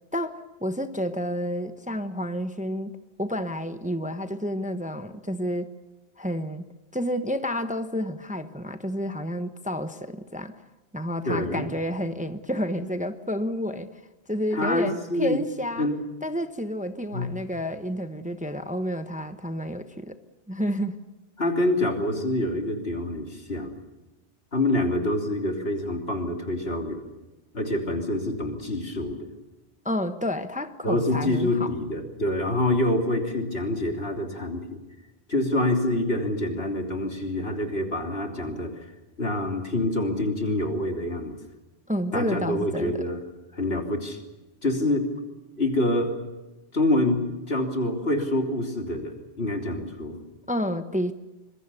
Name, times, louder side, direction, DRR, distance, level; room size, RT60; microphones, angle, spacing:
voice 1, 0.1-2.9 3.2-5.7 6.2-6.6 6.9-10.6 10.9-14.0 14.3-15.9 16.2-20.2 20.5-20.9 29.8-31.7 41.9-42.9 50.5-51.1, equal, 10° right, 9 dB, 1.0 m, -30 dB
voice 2, 11.2-11.7 14.5-15.4 15.8-16.0 17.1-17.3 21.4-23.8 24.5-27.1 27.5-29.3 30.8-34.8 35.3-38.7 39.2-41.3 42.1-43.2 43.5-44.2 44.6-45.1 45.6-46.2 46.7-50.2, left 1 dB, 70° left, 3 dB, 3.5 m, -26 dB
25.5 x 22.5 x 7.0 m, 1.1 s
omnidirectional pair, 1.1 m